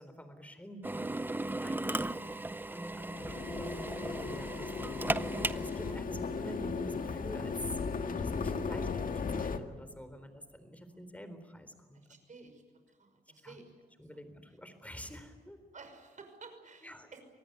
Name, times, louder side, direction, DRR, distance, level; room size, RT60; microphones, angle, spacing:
voice 1, 0.0-2.3 2.7-12.0 13.4-13.6 14.0-15.6 16.8-17.1, equal, 10° left, 10 dB, 3.9 m, -47 dB
Drill, 0.8-5.9, right 2 dB, 10° right, 0.7 m, -36 dB
sound 1, 3.0-9.6, left 5 dB, 55° left, 1.9 m, -36 dB
voice 2, 11.9-12.6 12.9-13.7 14.1-14.2 15.7-17.2, right 4 dB, 50° right, 6 dB, 5.9 m, -53 dB
25.5 x 19.0 x 9.4 m, 1.5 s
cardioid pair, 95°, 17 cm